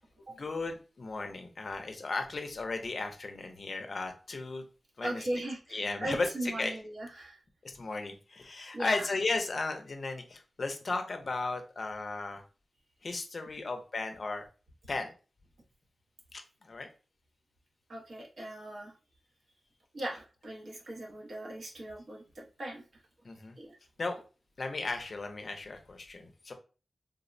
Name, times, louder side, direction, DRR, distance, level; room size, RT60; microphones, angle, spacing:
voice 1, 0.3-4.6 5.0-5.3 5.7-6.7 7.6-12.4 13.0-14.4 14.9-15.1 16.3-16.9 23.2-23.6 24.0-24.2 24.6-26.5, left 3 dB, 50° left, 5 dB, 0.5 m, -35 dB
voice 2, 5.0-7.4 8.7-9.0 17.9-18.9 19.9-22.8 23.6-23.8, right 1 dB, 65° right, -2 dB, 0.8 m, -38 dB
3.4 x 2.0 x 2.5 m, 0.35 s
wide cardioid pair, 135°, 0 cm